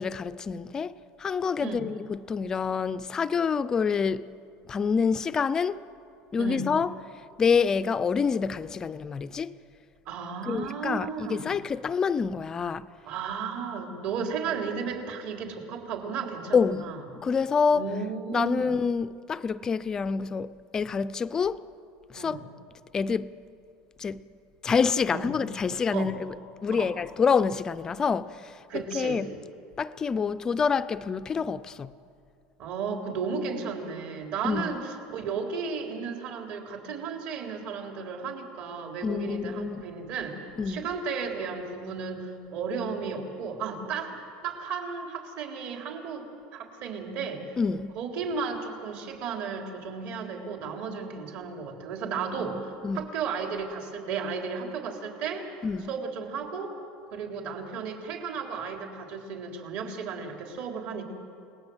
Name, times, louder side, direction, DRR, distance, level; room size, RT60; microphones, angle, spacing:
voice 1, 0.0-4.2 4.7-5.8 6.3-6.9 7.4-9.5 10.5-12.9 16.5-16.9 17.2-17.9 18.3-21.6 22.1-22.4 22.9-23.3 24.0-24.2 24.6-26.3 26.6-29.3 29.8-31.9 34.4-34.8 39.0-39.8 40.6-40.9 47.6-47.9 52.3-53.0 55.6-55.9, left 5 dB, 20° left, 0.5 m, -27 dB
voice 2, 6.4-6.7 10.1-11.5 13.1-17.0 17.7-18.7 22.1-22.4 25.1-25.3 25.9-26.1 26.7-26.9 28.7-29.2 32.6-44.2 44.4-47.6 48.0-55.4 55.9-56.7 57.1-61.0, right 5 dB, 50° right, 3.8 m, -34 dB
29.5 x 19.5 x 8.0 m
cardioid pair, 160°, 3 cm